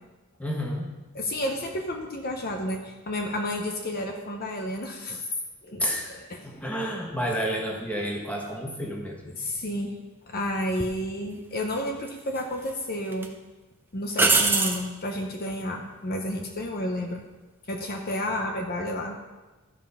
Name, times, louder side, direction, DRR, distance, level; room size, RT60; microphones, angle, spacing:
voice 1, 0.4-0.9 5.8-6.1 6.4-9.3, equal, 5° left, -1 dB, 1.4 m, -30 dB
voice 2, 1.1-5.2 5.6-5.8 6.3-6.4 9.3-9.9 10.3-13.3 13.9-17.2 17.7-19.2, left 1 dB, 45° left, 2 dB, 0.9 m, -31 dB
sound 1, 10.8-11.0 12.1-12.7 13.1-13.3 14.1-14.9 18.0-18.3, right 3 dB, 10° right, 0.6 m, -23 dB
13.5 x 5.2 x 5.6 m, 1.2 s
head